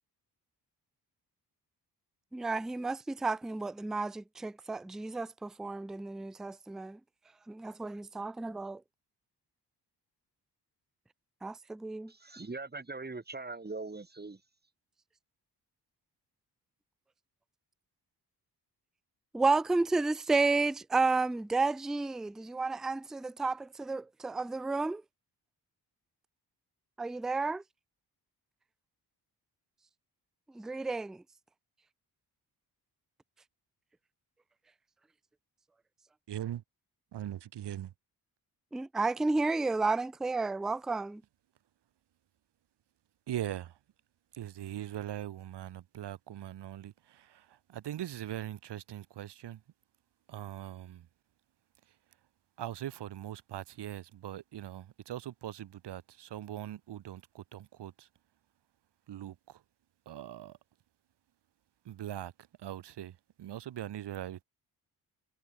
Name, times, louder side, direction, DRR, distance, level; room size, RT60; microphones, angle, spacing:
voice 1, 2.3-7.0 7.5-8.8 11.4-12.1 19.3-25.0 27.0-27.6 30.5-31.2 38.7-41.2, right 3 dB, ahead, 0.3 m, -31 dB
voice 2, 12.1-14.4, right 3 dB, 25° right, 4.1 m, -41 dB
voice 3, 36.3-36.6 37.1-37.9 43.3-43.8 44.3-49.6 50.3-51.1 52.6-58.1 59.1-59.6 60.1-60.6 61.8-62.3 62.6-64.4, right 12 dB, 90° right, 2.0 m, -41 dB
cardioid pair, 80°, 40 cm